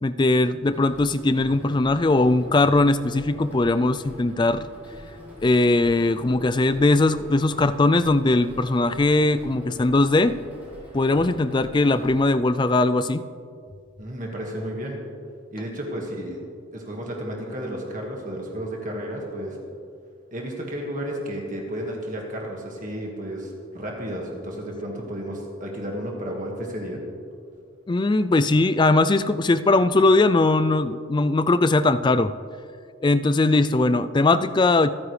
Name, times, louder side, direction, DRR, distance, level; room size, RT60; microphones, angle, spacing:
voice 1, 0.0-4.7 5.4-10.4 10.9-13.2 27.9-32.3 33.0-34.9, left 2 dB, 20° left, 12 dB, 0.3 m, -20 dB
sound 1, 0.6-12.2, equal, 10° right, 4.2 m, -44 dB
voice 2, 14.0-15.0 15.5-16.4 16.7-19.6 20.3-27.0, equal, 40° right, -1 dB, 1.9 m, -32 dB
26.5 x 9.8 x 3.3 m, 2.3 s
head